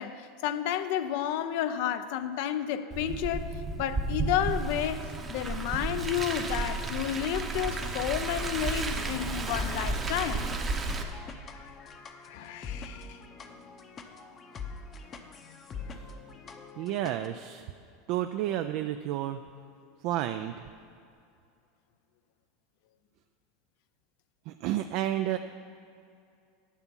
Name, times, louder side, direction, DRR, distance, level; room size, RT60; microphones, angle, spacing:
voice 1, 0.0-3.5 3.8-10.5 11.5-11.7 12.2-13.2, left 10 dB, 65° left, 0.5 m, -31 dB
Car, 2.9-11.0, right 3 dB, 20° right, 0.8 m, -33 dB
sound 1, 7.5-17.3, left 5 dB, 30° left, 0.7 m, -45 dB
voice 2, 16.8-17.7 18.1-19.4 20.0-20.5 24.5-25.4, right 12 dB, 55° right, 0.3 m, -30 dB
9.7 x 7.0 x 5.3 m
supercardioid pair, 135°, 0 cm